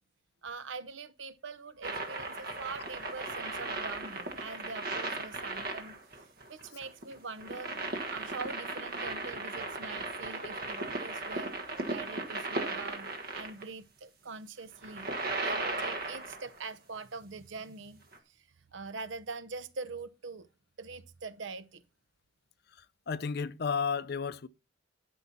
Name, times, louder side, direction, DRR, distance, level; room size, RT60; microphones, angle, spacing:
voice 1, 0.4-6.0 6.5-7.7 8.1-11.5 11.9-13.1 13.3-15.1 15.4-18.0 18.3-18.4 18.7-20.5 20.8-21.8, right 4 dB, 70° right, 0.7 m, -43 dB
sound 1, 1.8-13.6 14.7-16.6 18.1-18.2, right 2 dB, 50° right, 1.5 m, -37 dB
voice 2, 23.1-24.5, left 6 dB, 50° left, 0.5 m, -32 dB
12.0 x 5.5 x 4.2 m
head